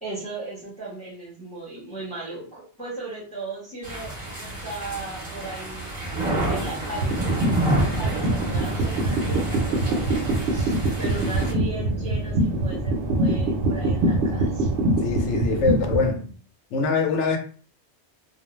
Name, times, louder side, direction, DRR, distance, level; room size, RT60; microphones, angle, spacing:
voice 1, 0.0-5.9 6.5-10.2 10.5-14.7 15.3-15.4, right 2 dB, 5° left, 0.9 m, -37 dB
sound 1, 3.8-11.5, right 1 dB, 35° right, 1.0 m, -29 dB
sound 2, 7.0-16.1, right 1 dB, 80° right, 0.9 m, -24 dB
voice 2, 15.0-16.3 16.7-17.4, left 4 dB, 85° left, 0.9 m, -24 dB
2.4 x 2.0 x 3.0 m
omnidirectional pair, 1.2 m